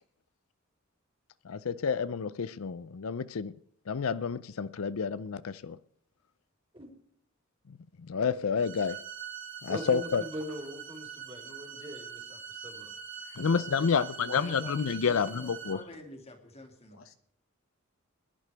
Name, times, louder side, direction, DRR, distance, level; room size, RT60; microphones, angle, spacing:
voice 1, 1.5-3.5 3.9-5.8 8.0-9.0 9.6-10.2 13.4-15.8, left 6 dB, 85° left, 0.5 m, -29 dB
sound 1, 8.6-15.7, right 7 dB, 60° right, 3.6 m, -43 dB
voice 2, 9.7-12.9, equal, 25° right, 3.8 m, -42 dB
voice 3, 13.2-13.6 13.9-14.4 16.9-17.1, left 3 dB, 70° left, 1.2 m, -45 dB
voice 4, 14.3-17.0, left 1 dB, 30° left, 2.5 m, -48 dB
21.5 x 11.0 x 3.4 m
head